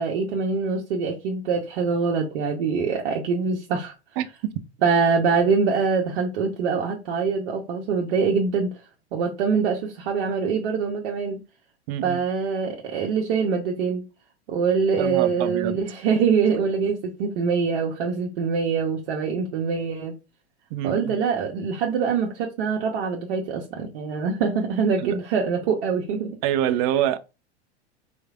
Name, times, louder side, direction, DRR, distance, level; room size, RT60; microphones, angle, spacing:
voice 1, 0.0-3.9 4.8-8.7 9.1-11.4 12.0-14.0 14.5-20.1 20.8-26.3, right 5 dB, 55° right, 0.9 m, -24 dB
voice 2, 11.9-12.2 15.0-15.8 20.7-21.1 25.0-25.2 26.4-27.2, right 11 dB, 40° right, 0.5 m, -25 dB
4.2 x 3.2 x 2.4 m
figure-of-eight pair, 90°, 34 cm